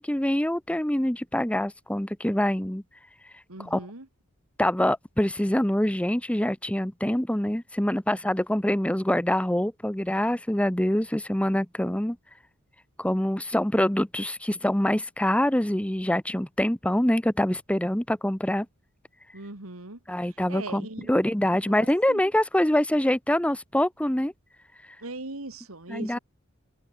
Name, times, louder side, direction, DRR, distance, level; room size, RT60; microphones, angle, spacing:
voice 1, 0.0-2.8 3.6-3.8 4.6-12.2 13.0-18.7 20.1-24.3 25.9-26.2, left 1 dB, 5° left, 0.9 m, -25 dB
voice 2, 3.5-4.1 19.3-20.0 20.5-21.1 21.6-22.2 25.0-26.1, right 2 dB, 90° right, 2.7 m, -39 dB
head